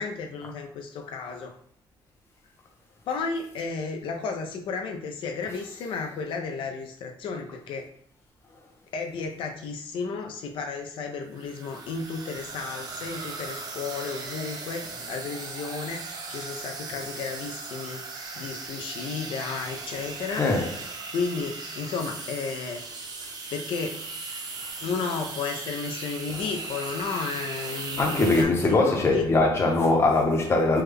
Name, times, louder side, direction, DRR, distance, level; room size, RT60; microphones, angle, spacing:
voice 1, 0.0-1.6 3.1-7.9 8.9-18.0 18.4-20.5 21.1-24.2 24.8-29.3, left 5 dB, 75° left, 0.4 m, -33 dB
sound 1, 11.3-28.4, right 4 dB, 50° right, 0.6 m, -38 dB
voice 2, 20.4-20.7 28.0-30.8, left 2 dB, 30° left, 0.7 m, -21 dB
3.3 x 2.1 x 3.3 m
cardioid pair, 155°, 9 cm